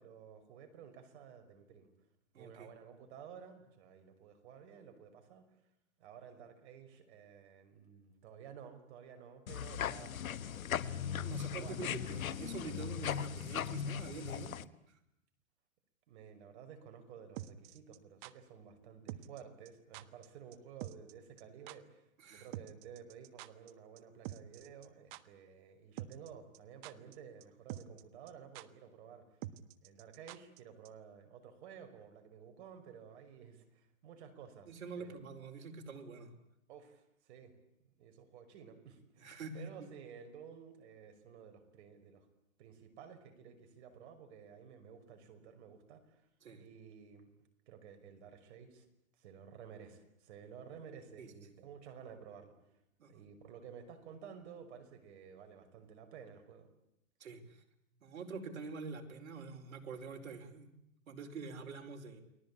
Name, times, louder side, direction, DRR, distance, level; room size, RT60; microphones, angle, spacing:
voice 1, 0.0-1.9 2.3-5.4 6.0-11.8 16.1-29.3 29.8-35.2 36.7-37.5 37.8-42.3 42.6-46.3 46.6-47.3 47.7-48.9 49.2-52.6 53.0-56.7, right 7 dB, 55° right, 7 dB, 5.6 m, -53 dB
voice 2, 2.3-2.7 11.1-14.6 22.2-22.5 34.6-36.3 39.2-39.9 46.4-46.6 51.2-51.3 53.0-53.1 57.2-57.4 58.0-60.7 61.1-62.2, right 4 dB, 85° right, 3 dB, 4.7 m, -46 dB
sound 1, 9.5-14.6, left 9 dB, 90° left, 1.3 m, -38 dB
sound 2, 17.4-18.3 19.1-19.4 19.7-19.8 19.9-20.3 20.5-20.6 20.8-21.1 21.4-21.5 21.7-21.8 22.5-23.7 24.0-24.1 24.2-24.9 25.1-25.2 26.0-26.3 26.5-27.2 27.4-27.5 27.7-28.0 28.3-28.4 28.6-28.7 29.4-30.6 30.9-31.0, right 15 dB, 35° right, 1.3 m, -46 dB
29.5 x 21.5 x 8.6 m, 0.82 s
hypercardioid pair, 145°, 40 cm